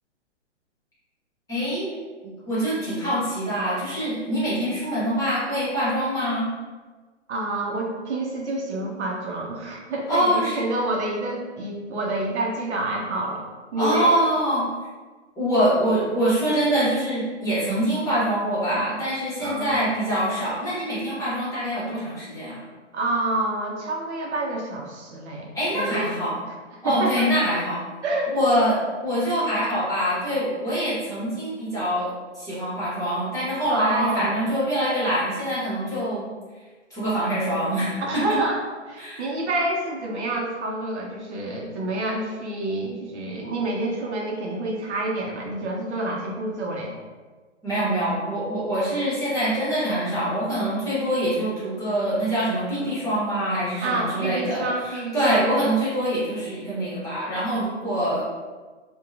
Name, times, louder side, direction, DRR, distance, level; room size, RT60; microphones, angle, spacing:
voice 1, 1.5-1.9 2.2-6.5 10.1-10.6 13.8-14.7 15.4-22.6 25.5-26.4 26.8-27.8 28.3-36.3 36.9-38.4 39.0-39.2 47.6-58.2, equal, 10° left, -10 dB, 1.0 m, -24 dB
voice 2, 7.3-14.1 19.4-19.8 22.9-26.1 26.7-27.3 28.0-28.5 33.7-34.4 38.0-46.9 53.8-55.5, right 2 dB, 65° right, 0 dB, 0.6 m, -28 dB
2.7 x 2.2 x 2.4 m, 1.4 s
hypercardioid pair, 125°, 36 cm